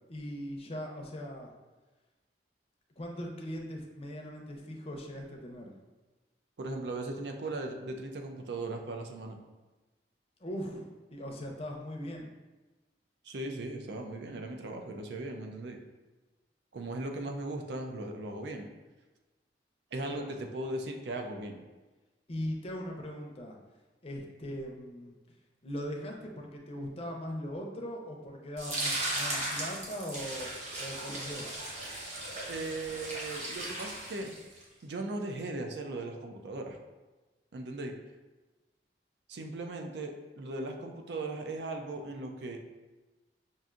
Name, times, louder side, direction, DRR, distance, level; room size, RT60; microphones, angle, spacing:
voice 1, 0.1-1.5 3.0-5.7 10.4-12.3 20.1-20.5 22.3-23.6 24.0-25.2 25.6-30.5 30.8-31.6, equal, 35° left, 0 dB, 0.5 m, -40 dB
voice 2, 6.6-9.4 13.2-15.8 16.7-18.7 19.9-21.6 32.5-34.3 34.8-36.8 37.5-38.0 39.3-42.6, right 2 dB, 70° right, 3 dB, 0.5 m, -38 dB
sound 1, 28.6-34.6, right 1 dB, 40° right, 0.8 m, -37 dB
5.5 x 2.6 x 2.4 m, 1.2 s
head